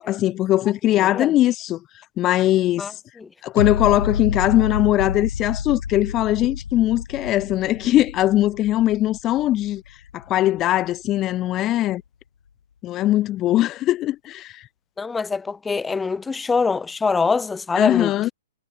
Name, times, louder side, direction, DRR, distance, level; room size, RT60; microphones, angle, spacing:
voice 1, 0.0-1.8 2.2-2.9 3.4-9.8 10.1-12.0 12.8-14.6 17.8-18.3, left 14 dB, 30° left, 1.0 m, -20 dB
voice 2, 1.0-1.3 2.8-2.9 3.2-3.3 15.0-18.3, left 4 dB, 10° left, 3.7 m, -24 dB
sound 1, 3.6-10.6 11.1-11.2, left 6 dB, 80° left, 2.4 m, -29 dB
hypercardioid pair, 125°, 0 cm